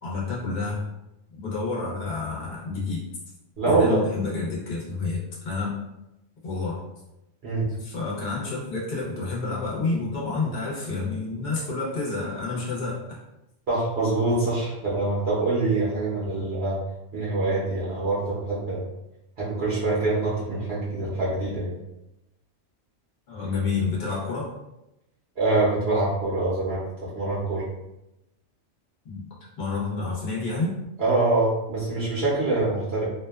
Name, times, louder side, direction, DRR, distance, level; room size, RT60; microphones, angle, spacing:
voice 1, 0.0-0.8 1.3-3.0 3.6-5.7 6.4-6.8 7.8-13.2 23.3-24.5 29.0-29.2 29.6-30.8, left 3 dB, 60° left, -5 dB, 1.0 m, -29 dB
voice 2, 3.6-4.0 7.4-7.7 13.7-16.8 17.1-18.8 19.4-21.7 25.4-27.6 31.0-33.1, right 2 dB, 65° right, -7 dB, 0.9 m, -25 dB
2.7 x 2.2 x 2.3 m, 0.92 s
omnidirectional pair, 1.2 m